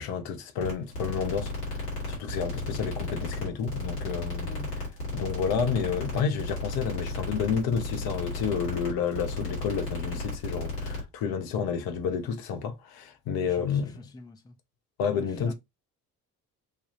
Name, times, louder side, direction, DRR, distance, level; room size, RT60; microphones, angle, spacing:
voice 1, 0.0-4.5 5.1-13.9 15.0-15.5, left 6 dB, 50° left, 0.7 m, -30 dB
sound 1, 0.6-11.0, left 2 dB, 75° left, 1.5 m, -34 dB
voice 2, 13.4-14.6 15.1-15.5, left 2 dB, 10° left, 0.5 m, -44 dB
3.4 x 2.3 x 2.7 m
figure-of-eight pair, 45°, 46 cm